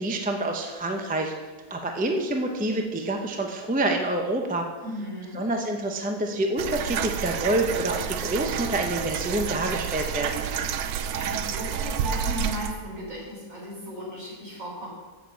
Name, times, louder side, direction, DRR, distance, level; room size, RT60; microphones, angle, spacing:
voice 1, 0.0-1.3 1.7-4.7 5.3-10.4, right 1 dB, 15° right, 3 dB, 0.3 m, -27 dB
voice 2, 4.8-5.4 10.8-14.9, equal, 55° right, -4 dB, 3.9 m, -36 dB
sound 1, 6.6-12.7, right 7 dB, 75° right, 1.1 m, -29 dB
7.2 x 6.5 x 7.5 m, 1.4 s
omnidirectional pair, 1.7 m